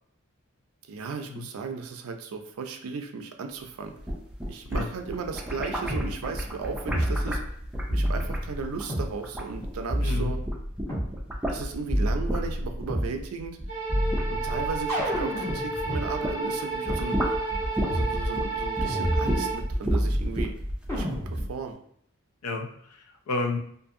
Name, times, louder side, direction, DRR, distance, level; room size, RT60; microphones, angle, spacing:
voice 1, 0.9-3.9 4.5-7.4 7.9-10.4 11.5-13.6 14.3-17.2 17.9-20.5 20.9-21.8, right 4 dB, 75° right, 5 dB, 0.4 m, -35 dB
sound 1, 3.8-10.1 10.4-16.4 16.7-21.5, equal, 5° right, 0.3 m, -32 dB
sound 2, 5.9-6.1 6.9-7.6 7.9-9.1 9.9-11.1 11.9-13.1 13.9-16.0 16.9-17.0 17.9-18.1 18.9-19.6 19.9-20.5 20.9-21.5, equal, 15° left, 0.8 m, -29 dB
voice 2, 10.0-10.3 22.4-23.6, left 3 dB, 85° left, 4 dB, 0.5 m, -31 dB
sound 3, 13.7-19.5, right 3 dB, 30° left, 1.2 m, -31 dB
2.6 x 2.6 x 2.5 m, 0.66 s
head